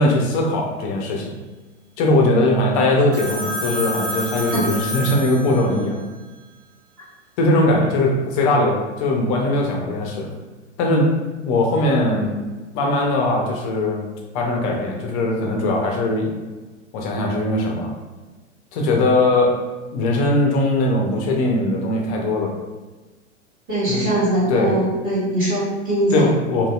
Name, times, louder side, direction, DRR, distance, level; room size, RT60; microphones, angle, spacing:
voice 1, 0.0-1.3 2.0-6.0 7.4-10.3 10.8-11.2 11.4-12.4 12.7-14.0 14.3-16.4 16.9-17.9 18.7-19.6 19.9-22.5 23.9-24.1 24.5-24.8 26.1-26.7, left 2 dB, 30° left, 1 dB, 0.5 m, -20 dB
Telephone, 3.1-6.0, equal, 90° right, 0.8 m, -29 dB
voice 2, 23.7-26.3, right 1 dB, 25° right, -8 dB, 1.0 m, -21 dB
2.8 x 2.6 x 2.2 m, 1.2 s
figure-of-eight pair, 100°, 36 cm